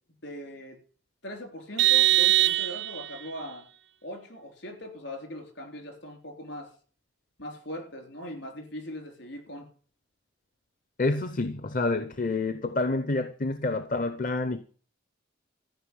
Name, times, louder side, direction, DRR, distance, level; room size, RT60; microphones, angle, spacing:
voice 1, 0.2-0.8 1.2-3.7 4.0-6.7 7.4-9.7, equal, 60° left, 4.0 m, -40 dB
Vehicle horn car horn honking, 1.8-3.2, right 16 dB, 60° right, 0.5 m, -22 dB
voice 2, 11.0-14.6, left 2 dB, 40° left, 0.7 m, -28 dB
13.5 x 5.9 x 9.6 m
head